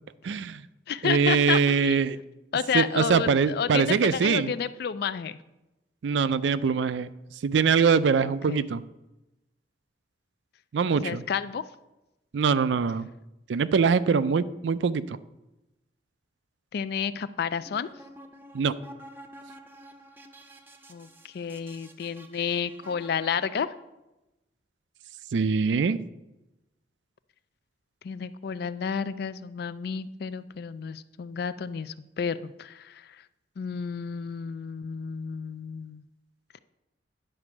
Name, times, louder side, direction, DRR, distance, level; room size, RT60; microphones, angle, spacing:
voice 1, 0.2-0.6 1.0-2.2 2.7-4.5 6.0-7.1 7.4-8.8 10.7-11.2 12.3-13.1 13.5-15.2 18.5-18.8 25.3-26.0, right 5 dB, 85° right, 15 dB, 0.4 m, -23 dB
voice 2, 0.9-2.0 2.5-5.4 8.2-8.7 11.0-11.6 16.7-17.9 20.9-23.7 28.0-33.2 33.6-36.0, left 7 dB, 60° left, 15 dB, 0.4 m, -31 dB
sound 1, 17.5-23.8, right 1 dB, 10° right, 0.6 m, -50 dB
10.0 x 4.3 x 6.0 m, 0.97 s
head